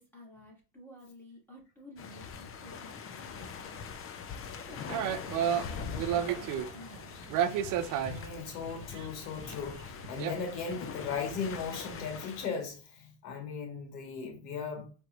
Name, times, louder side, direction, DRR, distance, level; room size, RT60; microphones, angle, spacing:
voice 1, 0.0-7.6, equal, 5° left, 2.0 m, -53 dB
sound 1, 2.0-12.5, left 6 dB, 30° left, 0.5 m, -43 dB
sound 2, 4.9-6.8 7.3-9.1 9.4-9.6 9.9-10.3 10.7-10.8 11.1-11.3 11.6-11.7, right 9 dB, 40° right, 0.5 m, -31 dB
voice 2, 8.0-14.9, left 5 dB, 85° left, 1.6 m, -37 dB
4.6 x 3.2 x 2.4 m
supercardioid pair, 105°, 50 cm